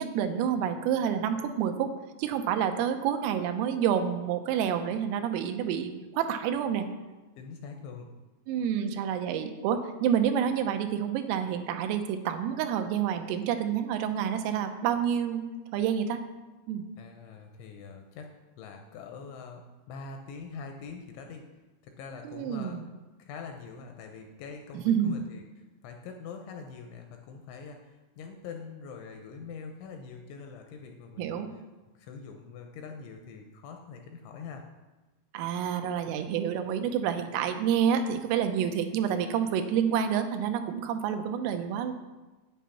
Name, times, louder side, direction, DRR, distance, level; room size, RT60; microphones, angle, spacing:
voice 1, 0.0-1.9 2.2-6.9 8.5-15.5 15.7-16.2 16.7-16.8 22.2-22.9 24.9-25.2 31.2-31.5 35.3-41.9, right 8 dB, 85° right, 7 dB, 3.4 m, -28 dB
voice 2, 7.4-8.1 17.0-18.3 18.6-21.5 21.8-22.8 23.2-31.6 31.9-34.7, left 5 dB, 80° left, 3 dB, 2.9 m, -44 dB
9.2 x 9.2 x 5.7 m, 1.2 s
omnidirectional pair, 6.0 m